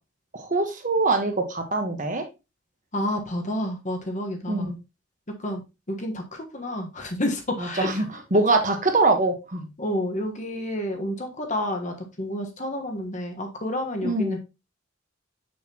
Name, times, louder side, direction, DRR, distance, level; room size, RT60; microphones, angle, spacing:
voice 1, 0.3-2.3 4.5-4.8 7.6-9.7 14.0-14.4, right 3 dB, 40° right, 5 dB, 1.2 m, -23 dB
voice 2, 2.9-4.7 5.4-5.6 5.9-8.0 9.8-14.4, left 1 dB, 35° left, 4 dB, 1.3 m, -30 dB
6.6 x 6.4 x 2.9 m, 0.26 s
head